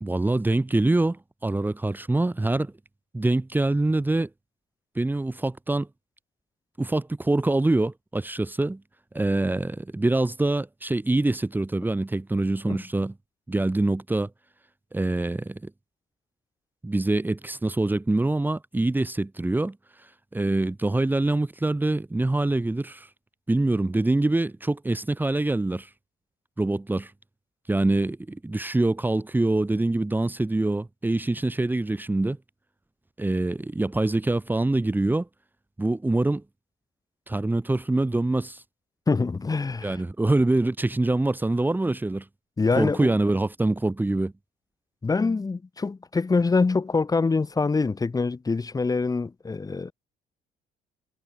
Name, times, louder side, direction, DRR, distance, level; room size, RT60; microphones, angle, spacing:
voice 1, 0.0-2.7 3.1-4.3 5.0-5.9 6.8-8.8 9.1-13.1 13.5-14.3 14.9-15.7 16.8-23.1 23.5-25.9 26.6-27.1 27.7-32.4 33.2-35.3 35.8-36.4 37.3-38.6 39.8-42.3 42.8-44.3, right 2 dB, 10° right, 2.0 m, -25 dB
voice 2, 39.1-40.0 42.6-43.1 45.0-49.9, left 4 dB, 20° left, 2.3 m, -25 dB
cardioid pair, 110°, 17 cm